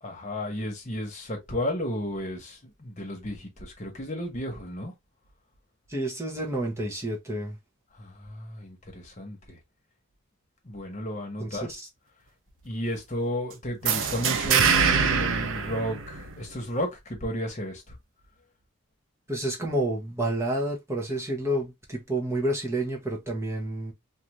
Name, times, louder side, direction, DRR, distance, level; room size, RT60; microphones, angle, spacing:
voice 1, 0.0-4.9 7.9-9.6 10.6-11.7 12.6-18.0, equal, 35° left, 1.1 m, -33 dB
voice 2, 5.9-7.6 11.4-11.9 19.3-23.9, right 1 dB, 15° right, 0.8 m, -29 dB
sound 1, 13.8-16.6, right 6 dB, 70° right, 0.5 m, -24 dB
2.6 x 2.5 x 3.0 m
head